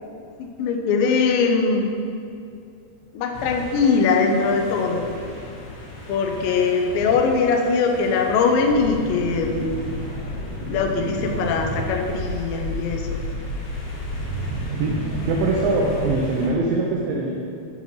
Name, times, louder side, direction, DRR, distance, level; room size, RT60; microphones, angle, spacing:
voice 1, 0.4-1.9 3.1-5.0 6.1-9.8 10.7-13.2, left 4 dB, 90° left, 3 dB, 2.0 m, -21 dB
sound 1, 3.3-16.5, left 1 dB, 65° left, 1.9 m, -37 dB
sound 2, 8.6-16.2, equal, 60° right, 2.9 m, -31 dB
voice 2, 14.8-17.3, right 3 dB, 85° right, -2 dB, 2.0 m, -23 dB
8.0 x 4.6 x 5.6 m, 2.4 s
omnidirectional pair, 4.9 m